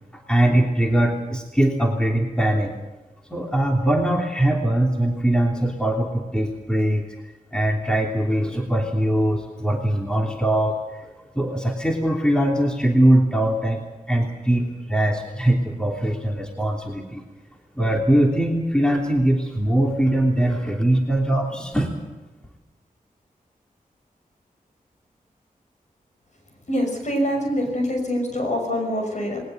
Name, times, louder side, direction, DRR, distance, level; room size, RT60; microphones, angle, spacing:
voice 1, 0.1-2.8 3.3-7.0 7.5-17.2 17.8-21.9, right 1 dB, 5° left, 1 dB, 3.2 m, -21 dB
voice 2, 26.7-29.4, equal, 55° left, 3 dB, 6.1 m, -24 dB
20.5 x 19.0 x 8.0 m, 1.1 s
wide cardioid pair, 80°, 15 cm